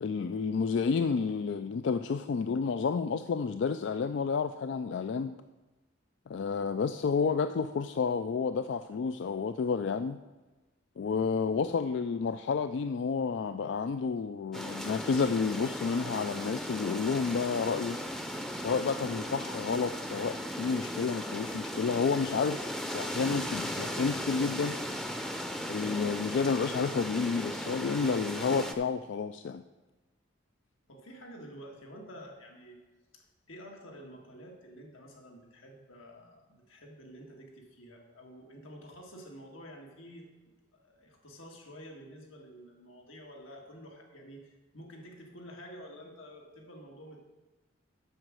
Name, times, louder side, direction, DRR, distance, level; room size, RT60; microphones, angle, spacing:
voice 1, 0.0-5.3 6.3-10.2 11.0-18.0 18.6-24.8 25.7-29.6, left 5 dB, 60° left, 10 dB, 0.3 m, -30 dB
sound 1, 14.5-28.7, equal, ahead, 0.6 m, -37 dB
voice 2, 30.9-32.8 33.1-40.3 40.8-47.2, equal, 90° left, 0 dB, 2.1 m, -49 dB
7.9 x 6.4 x 7.5 m, 1.1 s
head